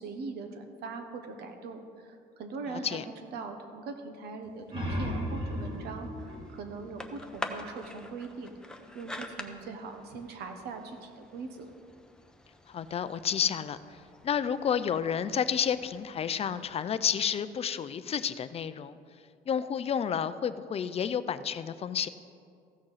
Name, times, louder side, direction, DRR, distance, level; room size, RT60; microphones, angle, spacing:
voice 1, 0.0-3.0 3.3-11.7, right 4 dB, 75° right, 6 dB, 1.3 m, -41 dB
voice 2, 2.7-3.0 12.7-13.8 14.2-19.0 19.5-22.1, left 8 dB, 35° left, 13 dB, 0.5 m, -30 dB
sound 1, 4.4-7.9, equal, 30° right, 2.4 m, -36 dB
sound 2, 4.7-16.9, left 1 dB, 5° left, 0.8 m, -47 dB
15.0 x 6.4 x 5.7 m, 2.4 s
cardioid pair, 110°, 17 cm